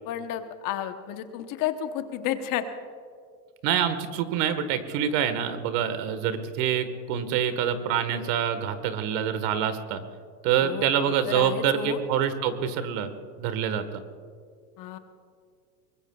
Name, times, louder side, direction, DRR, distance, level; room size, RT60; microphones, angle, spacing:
voice 1, 0.1-2.6 10.6-10.8 11.3-12.0 14.8-15.0, left 11 dB, 40° left, 8 dB, 1.1 m, -31 dB
voice 2, 3.6-10.0 10.4-13.1 13.4-13.8, right 8 dB, 55° right, 10 dB, 1.6 m, -26 dB
23.5 x 21.0 x 2.4 m, 2.1 s
supercardioid pair, 120°, 49 cm